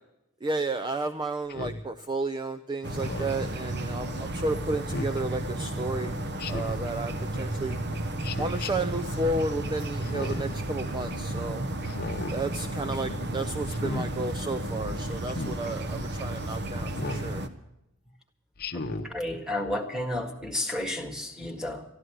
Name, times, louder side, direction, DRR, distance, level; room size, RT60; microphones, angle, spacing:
voice 1, 0.4-6.2 6.5-7.8 8.4-11.7 12.3-17.4, right 2 dB, 20° right, 0.5 m, -32 dB
Speech synthesizer, 1.5-1.8 2.9-3.4 4.9-5.2 6.4-6.9 8.2-8.7 10.0-10.5 11.8-12.4 13.7-14.1 15.3-15.6 16.9-17.3 18.6-19.1, left 2 dB, 45° left, 0.9 m, -35 dB
sound 1, 2.8-17.5, right 1 dB, 55° right, 1.1 m, -33 dB
voice 2, 18.7-21.9, left 1 dB, 5° right, 1.8 m, -32 dB
13.5 x 11.0 x 7.9 m
head